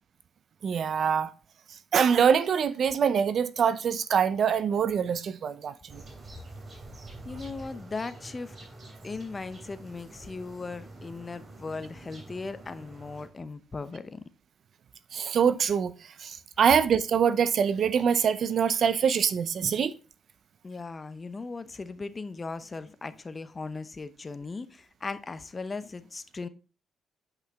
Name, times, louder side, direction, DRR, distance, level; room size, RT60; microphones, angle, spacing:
voice 1, 0.6-1.3 1.9-6.0 15.1-15.9 16.2-19.9, right 7 dB, 55° right, 0.6 m, -24 dB
sound 1, 5.9-13.3, right 2 dB, 40° right, 3.1 m, -46 dB
voice 2, 7.2-8.6 9.0-14.2 20.6-26.5, left 4 dB, 30° left, 0.7 m, -38 dB
7.9 x 5.6 x 3.5 m
cardioid pair, 90°, 0 cm